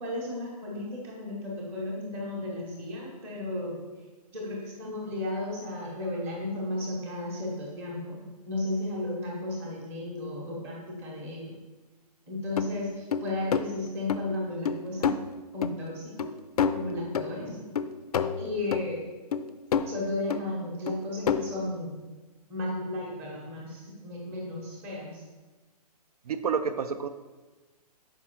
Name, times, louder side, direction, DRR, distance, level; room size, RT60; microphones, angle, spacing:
voice 1, 0.0-3.8 4.3-11.6 12.3-15.2 15.5-16.3 16.7-17.6 18.4-19.1 19.9-22.0 22.5-25.2, left 2 dB, 10° right, -3 dB, 0.8 m, -34 dB
sound 1, 12.6-12.7 13.1-13.7 14.1-14.2 14.7-15.2 15.6-15.7 16.2-16.3 16.6-17.4 17.8-18.9 19.3-20.0 20.3-20.5 20.9-21.6, left 7 dB, 70° left, 0.4 m, -28 dB
voice 2, 26.3-27.1, right 6 dB, 70° right, 9 dB, 0.5 m, -29 dB
5.9 x 4.9 x 4.3 m, 1.2 s
hypercardioid pair, 175°, 20 cm